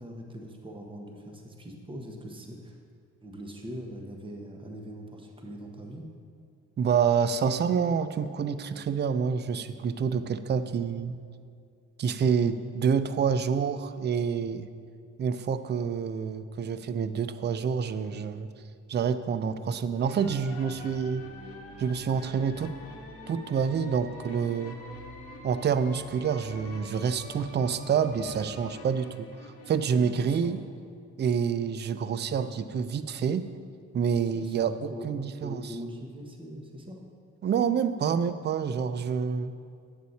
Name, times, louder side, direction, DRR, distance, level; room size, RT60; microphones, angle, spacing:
voice 1, 0.0-2.8 3.2-6.1 29.9-30.6 34.3-37.0, equal, 15° right, 2 dB, 1.2 m, -42 dB
voice 2, 6.8-11.2 12.0-14.7 15.2-18.5 18.9-21.3 21.8-22.7 23.3-24.8 25.4-30.6 31.2-33.4 33.9-35.7 37.4-39.5, right 6 dB, 35° right, 12 dB, 0.5 m, -27 dB
sound 1, 19.9-30.4, left 1 dB, 50° left, 1.1 m, -51 dB
sound 2, 20.1-28.7, left 2 dB, 25° left, 1.8 m, -46 dB
9.3 x 8.0 x 4.2 m, 2.3 s
cardioid pair, 90°, 30 cm